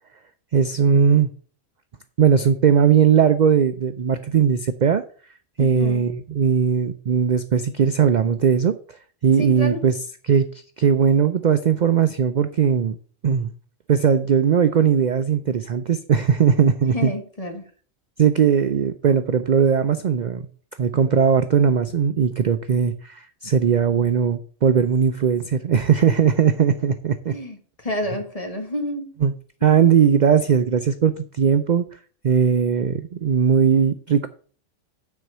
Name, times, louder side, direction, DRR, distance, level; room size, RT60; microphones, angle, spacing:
voice 1, 0.5-1.3 2.2-5.0 5.6-8.8 9.2-9.9 10.3-10.5 10.8-13.0 13.2-13.5 13.9-17.1 18.2-20.5 20.8-27.4 29.2-29.3 29.6-31.9 32.2-34.3, right 7 dB, 60° right, 10 dB, 0.4 m, -19 dB
voice 2, 5.6-6.1 9.4-9.9 16.9-17.6 27.3-29.1 29.6-29.9, left 1 dB, 30° left, 4 dB, 1.7 m, -29 dB
9.5 x 4.5 x 6.6 m, 0.44 s
omnidirectional pair, 1.4 m